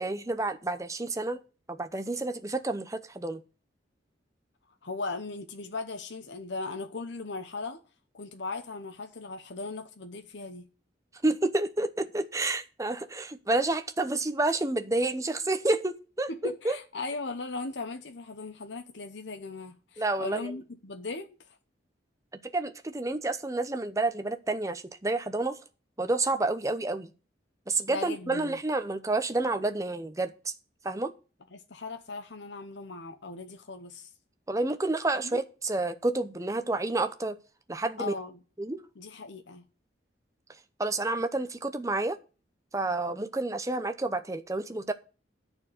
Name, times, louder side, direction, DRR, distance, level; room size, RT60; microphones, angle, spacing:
voice 1, 0.0-1.4 1.7-3.4 11.2-16.8 20.0-20.5 22.5-25.6 26.0-27.1 27.7-30.5 30.8-31.1 34.5-37.4 37.7-38.1 38.6-38.8 40.8-42.2 42.7-44.9, right 2 dB, 15° right, 0.7 m, -29 dB
voice 2, 4.8-7.8 8.1-10.7 16.3-21.4 27.9-28.6 31.5-34.1 35.2-35.4 38.0-38.4 39.0-39.6, left 3 dB, 80° left, 0.9 m, -38 dB
10.0 x 4.5 x 7.7 m
head